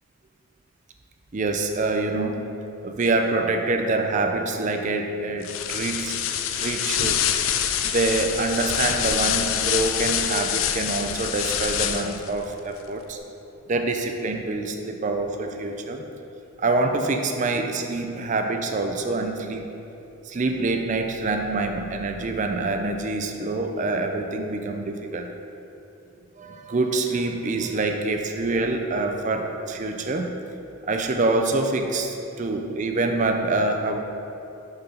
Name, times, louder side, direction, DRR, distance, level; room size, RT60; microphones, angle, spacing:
voice 1, 1.3-2.5 2.8-6.2 6.6-7.3 7.8-13.2 13.7-16.0 16.6-19.7 20.2-25.3 26.4-30.3 30.9-34.0, right 3 dB, 35° right, 4 dB, 0.4 m, -26 dB
sound 1, 5.4-12.3, left 9 dB, 65° left, 0.4 m, -26 dB
6.4 x 4.6 x 5.6 m, 2.8 s
head